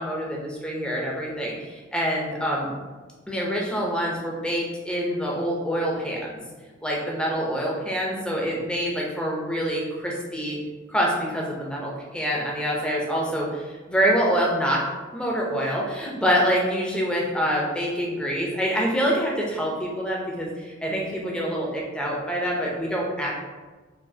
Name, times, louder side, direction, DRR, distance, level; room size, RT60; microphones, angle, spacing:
voice 1, 0.0-1.5 1.9-2.7 3.3-6.2 6.8-9.8 10.3-10.6 10.9-11.1 11.3-13.5 13.9-14.8 15.1-19.3 19.6-20.5 20.8-23.3, equal, 5° left, -3 dB, 0.6 m, -25 dB
4.7 x 2.6 x 2.7 m, 1.3 s
head